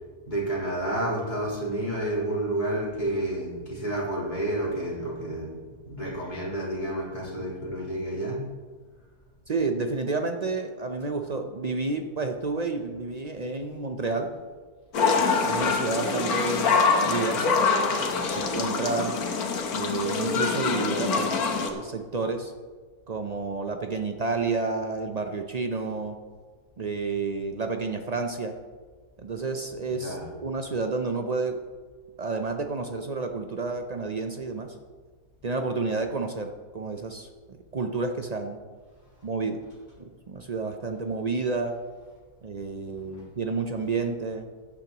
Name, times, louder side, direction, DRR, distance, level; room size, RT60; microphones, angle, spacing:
voice 1, 0.3-5.6 5.9-8.4 29.8-30.3 43.1-43.2, right 1 dB, 30° left, -7 dB, 3.9 m, -30 dB
voice 2, 9.5-14.3 15.1-17.6 17.9-19.2 19.7-22.5 23.1-26.2 26.8-28.6 29.2-31.6 32.2-34.8 35.4-38.6 39.2-39.6 40.0-41.8 42.4-44.5, right 3 dB, 65° right, 5 dB, 0.4 m, -30 dB
sound 1, 14.9-21.7, left 5 dB, 75° left, 1.5 m, -25 dB
15.0 x 9.9 x 2.9 m, 1.5 s
omnidirectional pair, 1.6 m